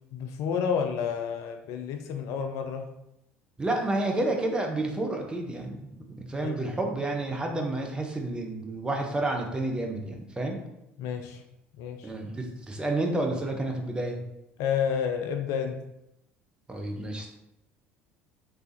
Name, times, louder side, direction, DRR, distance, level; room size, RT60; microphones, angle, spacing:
voice 1, 0.1-2.9 6.4-6.6 11.0-11.4 11.8-12.1 14.6-15.9, left 7 dB, 50° left, 5 dB, 0.3 m, -30 dB
voice 2, 3.6-5.8 6.2-10.6 12.0-14.2 16.7-17.3, right 2 dB, 15° right, 1 dB, 0.6 m, -30 dB
3.3 x 3.3 x 2.6 m, 0.85 s
figure-of-eight pair, 65°, 7 cm